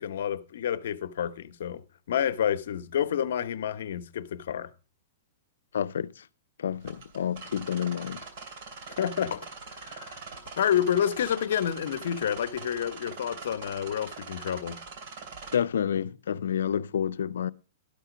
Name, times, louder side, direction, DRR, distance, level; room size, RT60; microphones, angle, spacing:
voice 1, 0.0-4.7 8.9-9.5 9.8-10.2 10.6-14.8, left 9 dB, 65° left, 0.9 m, -29 dB
voice 2, 5.7-6.2 6.6-8.2 15.5-17.5, left 8 dB, 90° left, 0.5 m, -29 dB
sound 1, 6.8-15.6, right 4 dB, 45° right, 3.0 m, -43 dB
12.5 x 5.6 x 5.0 m
hypercardioid pair, 170°, 0 cm